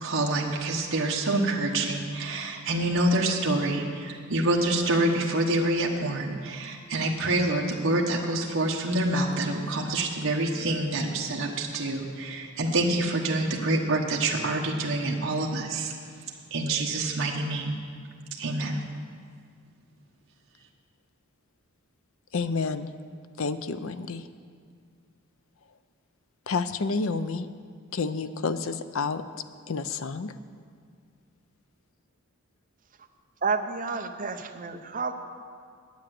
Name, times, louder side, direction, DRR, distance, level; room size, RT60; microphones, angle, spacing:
voice 1, 0.0-15.9 16.5-17.8 18.4-18.8, right 2 dB, 60° right, -1 dB, 1.1 m, -27 dB
voice 2, 22.3-22.9 23.4-24.3 26.5-27.5 27.9-29.2 29.7-30.3, left 4 dB, 65° left, 12 dB, 0.5 m, -29 dB
voice 3, 33.4-35.1, right 4 dB, 35° right, 6 dB, 0.7 m, -30 dB
10.0 x 8.9 x 7.6 m, 2.1 s
head